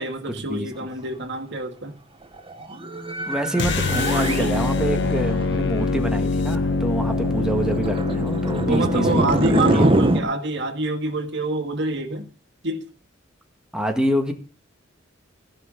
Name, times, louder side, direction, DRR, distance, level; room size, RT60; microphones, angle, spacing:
voice 1, 0.0-2.0 8.7-12.3 12.6-12.9, right 2 dB, 65° right, 2.1 m, -26 dB
sound 1, 2.4-10.2, right 1 dB, 30° right, 1.7 m, -25 dB
voice 2, 3.3-10.0 13.7-14.3, right 1 dB, 5° right, 1.8 m, -26 dB
sound 2, 3.6-9.8, left 3 dB, 65° left, 0.9 m, -24 dB
16.0 x 5.8 x 8.9 m
head